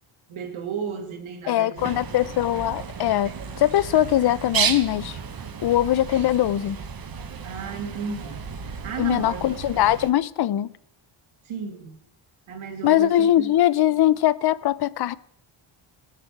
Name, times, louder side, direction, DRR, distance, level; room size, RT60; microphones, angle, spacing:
voice 1, 0.3-2.0 7.4-9.5 11.4-12.0 12.5-13.6, right 6 dB, 75° right, 2.0 m, -34 dB
voice 2, 1.5-3.3 3.6-5.2 5.6-6.8 9.0-10.7 12.8-15.1, left 12 dB, 55° left, 0.5 m, -21 dB
Bird, 1.8-10.1, right 6 dB, 45° right, 1.1 m, -33 dB
18.5 x 6.8 x 4.6 m
cardioid pair, 105°, 49 cm